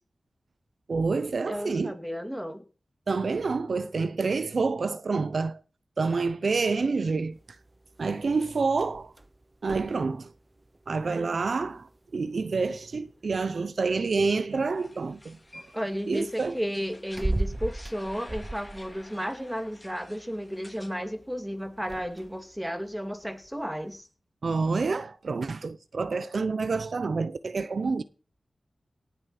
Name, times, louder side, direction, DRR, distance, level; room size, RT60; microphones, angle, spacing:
voice 1, 0.9-1.9 3.1-5.6 6.0-7.4 8.0-9.1 9.6-10.3 10.9-15.6 16.1-16.6 24.4-28.0, right 4 dB, 70° right, 0.8 m, -28 dB
voice 2, 1.5-2.6 15.7-24.1, equal, 5° right, 2.7 m, -33 dB
sound 1, 7.3-24.0, right 2 dB, 30° right, 0.8 m, -40 dB
sound 2, 14.5-21.0 21.2-22.5, left 1 dB, 20° left, 3.9 m, -52 dB
18.5 x 7.0 x 5.9 m
wide cardioid pair, 70°, 0 cm